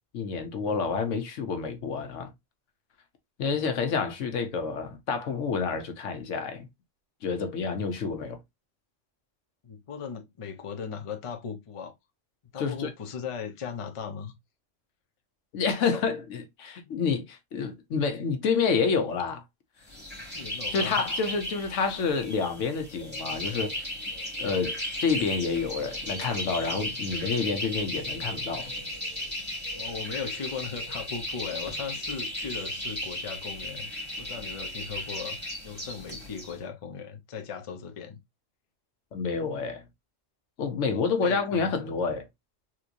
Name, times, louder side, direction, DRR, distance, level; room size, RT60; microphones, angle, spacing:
voice 1, 0.1-2.3 3.4-6.7 7.2-8.4 12.6-12.9 15.5-19.4 20.7-23.9 24.4-28.7 39.1-39.8 40.6-42.3, left 5 dB, 75° left, 1.1 m, -28 dB
voice 2, 9.6-11.9 12.5-14.3 16.8-17.0 20.3-21.0 29.7-33.9 34.2-38.2 40.9-41.9, left 6 dB, 35° left, 0.6 m, -38 dB
sound 1, 19.9-36.5, left 1 dB, 10° right, 2.2 m, -35 dB
3.7 x 3.0 x 2.5 m
omnidirectional pair, 1.3 m